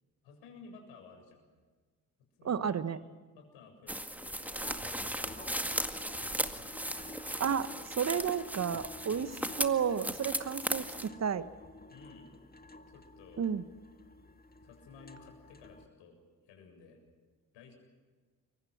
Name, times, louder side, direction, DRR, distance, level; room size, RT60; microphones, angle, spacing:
voice 1, 0.2-1.4 2.4-3.1 3.4-4.4 4.8-5.7 6.2-6.8 9.2-9.7 11.9-12.3 12.9-13.5 14.6-17.0 17.5-17.7, left 4 dB, 65° left, 4 dB, 7.3 m, -55 dB
voice 2, 2.4-3.0 7.4-9.3 9.6-11.5 13.4-13.6, right 7 dB, 35° right, 14 dB, 1.5 m, -32 dB
sound 1, 3.9-11.1, right 1 dB, 5° right, 2.0 m, -37 dB
sound 2, 4.4-15.9, left 2 dB, 20° left, 1.9 m, -51 dB
29.0 x 23.5 x 6.2 m, 1.4 s
hypercardioid pair, 50°, 46 cm